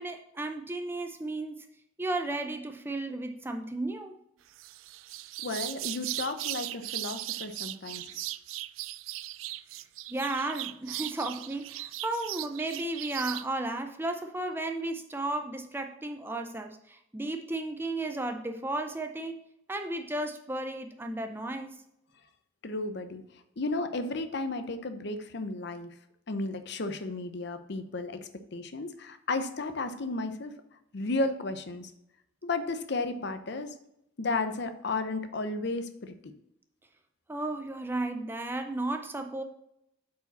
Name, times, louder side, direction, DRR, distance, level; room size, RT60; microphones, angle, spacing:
voice 1, 0.0-1.7 2.0-4.1 10.1-19.4 19.7-21.8 37.3-39.4, right 2 dB, 10° right, 5 dB, 0.5 m, -34 dB
sound 1, 4.5-13.5, right 16 dB, 85° right, 0.3 m, -38 dB
voice 2, 5.4-8.1 22.6-23.2 23.6-25.9 26.3-30.5 30.9-31.9 32.4-33.8 34.2-36.2, left 3 dB, 60° left, 9 dB, 0.7 m, -33 dB
8.4 x 4.9 x 4.1 m, 0.78 s
head